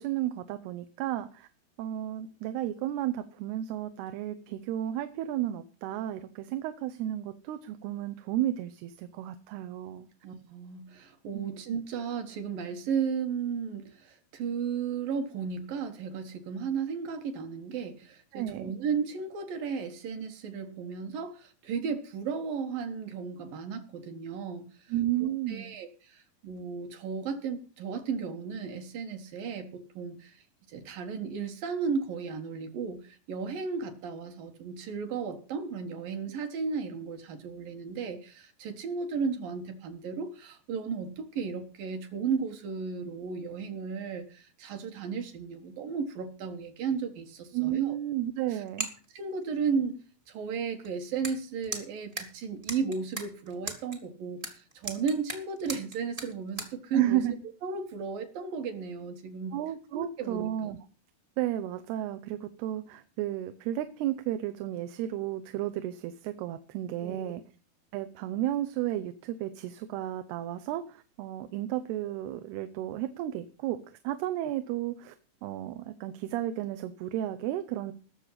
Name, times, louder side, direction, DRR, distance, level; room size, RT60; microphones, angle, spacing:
voice 1, 0.0-1.5 1.8-10.1 11.3-11.5 18.3-18.7 24.9-25.8 47.5-48.9 56.9-57.3 59.5-60.8 61.4-67.4 67.9-75.2 75.4-77.9, right 13 dB, 80° right, 9 dB, 2.8 m, -33 dB
voice 2, 10.2-24.7 25.2-30.4 30.7-48.0 48.5-48.6 49.1-50.0 50.3-57.2 57.6-59.6 59.9-60.5 67.0-67.3, right 5 dB, 65° right, 6 dB, 2.9 m, -34 dB
sound 1, 48.7-49.0 49.4-49.5 50.8-50.9 51.2-51.4 51.6-54.0 54.4-56.7, right 2 dB, 25° right, 1.1 m, -37 dB
18.5 x 7.0 x 5.7 m, 0.37 s
omnidirectional pair, 4.6 m